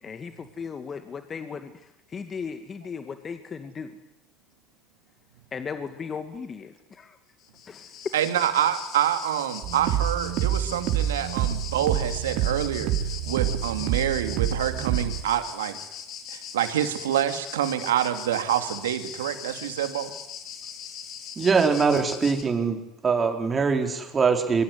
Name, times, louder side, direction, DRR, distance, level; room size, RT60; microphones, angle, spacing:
voice 1, 0.0-4.0 5.5-7.2 7.7-7.9, left 6 dB, 35° left, 8 dB, 2.2 m, -37 dB
sound 1, 7.4-22.4, left 8 dB, 50° left, 4.6 m, -40 dB
voice 2, 8.1-12.9 13.3-15.8 16.3-20.1, right 11 dB, 80° right, 9 dB, 2.7 m, -27 dB
sound 2, 9.6-15.2, right 10 dB, 60° right, 4.0 m, -27 dB
voice 3, 21.4-22.8 23.0-24.6, right 5 dB, 30° right, 5 dB, 4.9 m, -22 dB
25.5 x 23.5 x 9.7 m, 0.85 s
hypercardioid pair, 75°, 0 cm